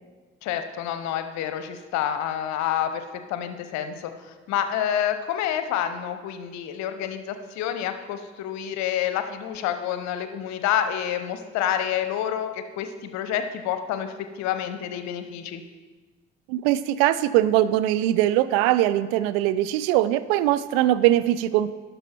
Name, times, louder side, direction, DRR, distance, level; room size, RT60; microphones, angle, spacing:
voice 1, 0.4-15.6, left 10 dB, 65° left, 9 dB, 0.8 m, -28 dB
voice 2, 16.5-21.7, right 13 dB, 70° right, 15 dB, 0.4 m, -21 dB
11.5 x 5.4 x 4.4 m, 1.3 s
figure-of-eight pair, 45°, 30 cm